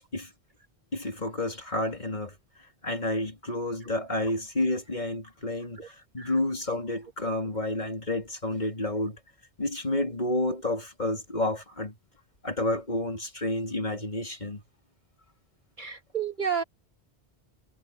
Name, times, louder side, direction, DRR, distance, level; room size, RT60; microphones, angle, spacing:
voice 1, 0.9-2.4 2.8-9.2 9.6-12.0 12.4-14.6, left 1 dB, 40° left, 3.8 m, -30 dB
voice 2, 15.8-16.6, right 7 dB, 45° right, 3.5 m, -31 dB
omnidirectional pair, 1.1 m